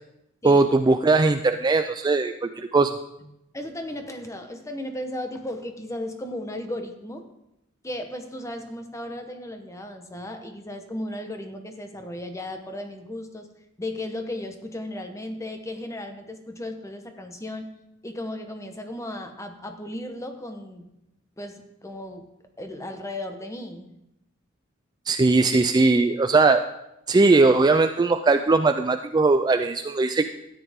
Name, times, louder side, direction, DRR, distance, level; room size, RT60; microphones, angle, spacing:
voice 1, 0.4-2.9 25.1-26.7 27.1-30.3, right 3 dB, 20° right, 8 dB, 0.3 m, -19 dB
voice 2, 3.2-7.3 7.8-13.5 13.8-17.7 18.0-20.9 21.4-22.3 22.6-23.9, left 1 dB, 15° left, 6 dB, 1.0 m, -35 dB
13.0 x 9.5 x 3.5 m, 0.83 s
head